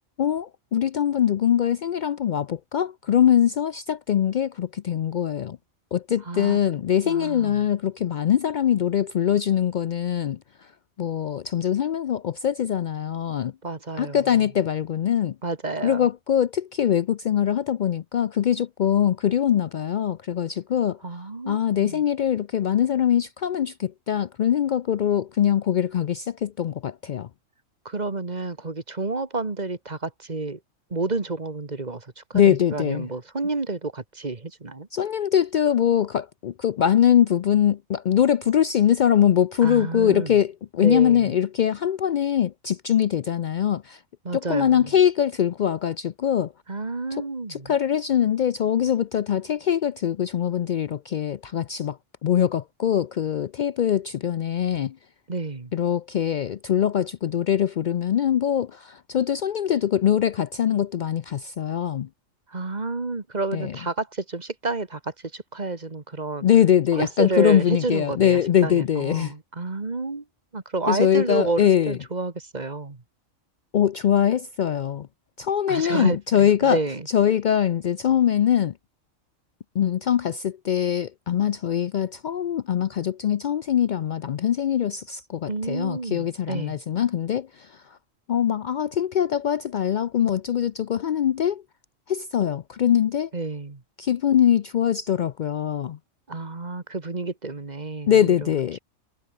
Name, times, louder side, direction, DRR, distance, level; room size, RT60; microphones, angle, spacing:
voice 1, 0.2-5.6 5.9-10.4 11.0-13.5 14.0-15.4 15.8-21.0 21.5-27.3 32.3-33.1 34.9-44.0 44.3-46.5 47.5-52.0 52.2-55.0 55.7-62.1 63.5-63.8 66.4-69.3 70.9-72.0 73.7-75.1 75.4-76.8 77.1-78.7 79.8-87.8 88.3-91.6 92.1-93.3 94.0-96.0 98.1-98.8, left 9 dB, 90° left, 0.4 m, -22 dB
voice 2, 6.3-6.6 7.0-7.6 13.6-14.4 15.4-16.1 21.0-22.0 27.9-30.6 30.9-34.9 39.6-40.4 40.8-41.3 44.2-44.9 46.7-47.7 55.3-55.7 61.7-61.8 62.5-66.5 66.9-70.2 70.5-73.0 75.7-77.1 85.5-86.8 93.3-93.8 96.3-98.5, right 3 dB, 35° right, 1.9 m, -30 dB
omnidirectional pair, 1.4 m